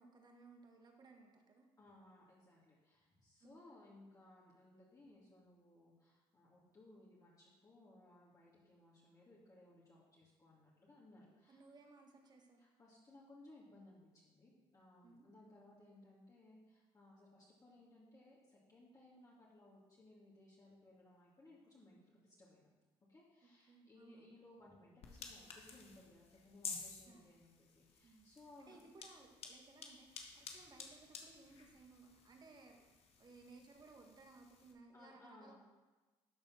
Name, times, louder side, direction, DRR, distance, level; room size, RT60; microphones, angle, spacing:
voice 1, 0.0-1.7 3.4-3.6 11.5-12.6 15.0-15.3 23.7-24.4 27.1-27.4 28.0-28.3 28.6-32.9 33.2-35.6, right 3 dB, 35° right, 2 dB, 1.8 m, -61 dB
voice 2, 1.8-11.6 12.6-22.7 23.1-28.8 34.9-35.6, left 1 dB, 30° left, -6 dB, 2.6 m, -62 dB
sound 1, 25.0-34.7, left 5 dB, 60° left, 1.5 m, -53 dB
12.0 x 4.3 x 5.8 m, 1.2 s
supercardioid pair, 70°, 12 cm